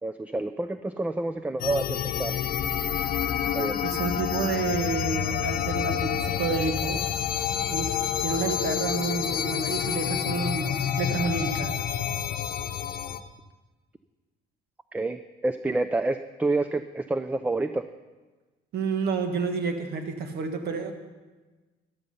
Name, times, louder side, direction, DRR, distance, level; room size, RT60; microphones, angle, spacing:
voice 1, 0.0-2.3 3.5-3.8 14.9-17.9, right 2 dB, 10° right, 10 dB, 0.4 m, -28 dB
sound 1, 1.6-13.2, left 9 dB, 60° left, 0.9 m, -28 dB
voice 2, 3.8-7.0 7.7-10.7 11.0-11.7 18.7-20.9, right 4 dB, 70° right, 6 dB, 1.7 m, -29 dB
13.0 x 12.0 x 5.6 m, 1.3 s
cardioid pair, 110°, 17 cm